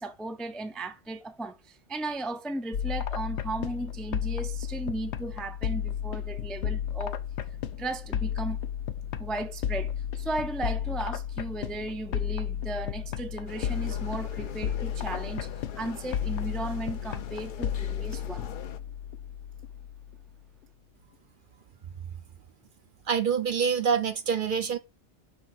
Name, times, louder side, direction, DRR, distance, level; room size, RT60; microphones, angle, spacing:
voice 1, 0.0-7.2 7.5-8.6 9.2-18.5, right 2 dB, ahead, 0.4 m, -36 dB
sound 1, 2.7-20.3, left 9 dB, 75° left, 1.0 m, -33 dB
sound 2, 13.5-18.8, left 8 dB, 55° left, 0.7 m, -44 dB
voice 2, 23.1-24.8, right 7 dB, 55° right, 0.8 m, -26 dB
6.2 x 3.5 x 5.8 m
omnidirectional pair, 1.2 m